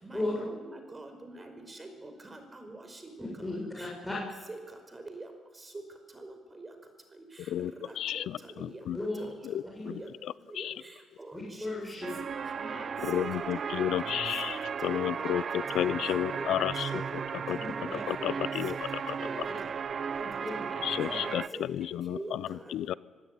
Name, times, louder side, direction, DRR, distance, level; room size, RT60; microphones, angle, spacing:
voice 1, 0.0-3.3 3.8-4.6 4.9-5.3 6.2-6.3 6.6-6.7 7.8-8.3 8.6-8.8 9.6-10.0 10.5-10.9 11.2-11.6 12.7-13.2 13.7-13.9 14.8-15.3 15.8-15.9 16.3-16.9 17.2-17.3 19.2-19.4 20.6-20.7 21.2-21.6 22.1-23.0, right 2 dB, 25° right, 7 dB, 5.2 m, -45 dB
voice 2, 3.2-4.1 8.9-9.2 9.7-9.9 11.3-12.1 12.6-12.8 17.9-18.3 20.2-20.5 21.1-21.2, left 2 dB, 10° left, -5 dB, 6.8 m, -36 dB
voice 3, 8.6-9.0 9.4-9.6 10.6-10.7 13.0-16.9 17.5-18.7 20.8-21.4 21.8-22.2 22.7-22.9, left 11 dB, 75° left, 20 dB, 0.6 m, -31 dB
sound 1, 12.0-21.5, right 6 dB, 50° right, 1.0 m, -35 dB
25.5 x 16.0 x 9.9 m, 1.5 s
cardioid pair, 90°, 0 cm